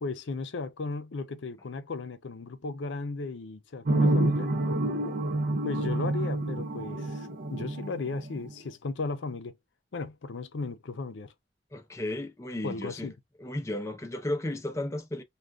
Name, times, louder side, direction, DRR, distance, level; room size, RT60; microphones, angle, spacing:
voice 1, 0.0-4.5 5.6-9.6 9.9-11.3 12.6-13.1, left 3 dB, 75° left, 0.5 m, -36 dB
sound 1, 3.9-8.6, right 1 dB, 50° right, 0.4 m, -28 dB
voice 2, 11.7-13.1 13.4-15.2, left 1 dB, 15° left, 0.4 m, -34 dB
3.4 x 2.3 x 2.4 m
head